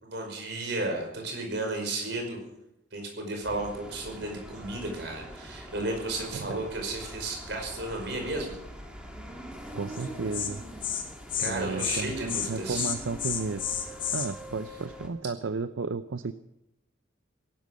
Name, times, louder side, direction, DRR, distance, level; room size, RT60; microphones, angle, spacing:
voice 1, 0.0-2.4 2.9-8.5 11.4-12.9, right 2 dB, 60° right, 2 dB, 5.3 m, -33 dB
sound 1, 3.4-15.1, equal, 5° right, 2.0 m, -43 dB
voice 2, 9.7-10.6 11.4-13.6 14.1-16.3, right 4 dB, 80° right, 12 dB, 0.6 m, -33 dB
Insect, 9.9-10.1 10.3-10.5 10.8-11.0 11.3-11.5 11.8-12.0 12.3-12.5 12.7-14.3, left 9 dB, 45° left, 2.3 m, -30 dB
18.0 x 12.0 x 6.5 m, 0.88 s
head